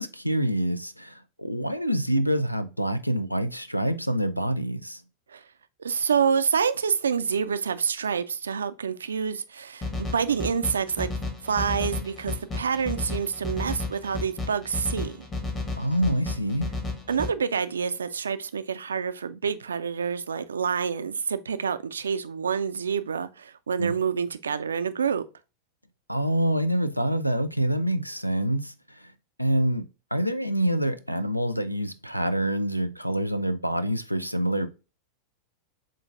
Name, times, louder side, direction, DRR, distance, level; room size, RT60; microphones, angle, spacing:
voice 1, 0.0-5.0 15.8-16.7 23.8-23.9 26.1-28.7 29.4-29.8 30.1-34.7, right 1 dB, 90° left, 0.4 m, -26 dB
voice 2, 5.8-11.1 11.4-15.3 17.1-25.3, right 6 dB, 70° right, 0.4 m, -27 dB
sound 1, 9.8-17.3, left 3 dB, 25° left, 1.2 m, -33 dB
7.5 x 2.5 x 2.4 m
figure-of-eight pair, 90°, 0 cm